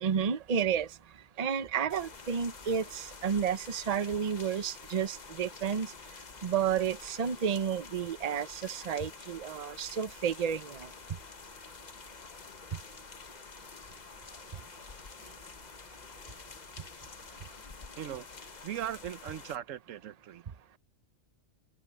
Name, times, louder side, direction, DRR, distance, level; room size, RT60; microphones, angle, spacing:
voice 1, 0.0-0.9 1.4-5.9 6.4-10.9, right 7 dB, 35° right, 0.8 m, -31 dB
sound 1, 1.9-19.6, left 5 dB, 40° left, 1.0 m, -48 dB
voice 2, 18.6-20.4, right 10 dB, 90° right, 1.2 m, -38 dB
open air
omnidirectional pair, 1.3 m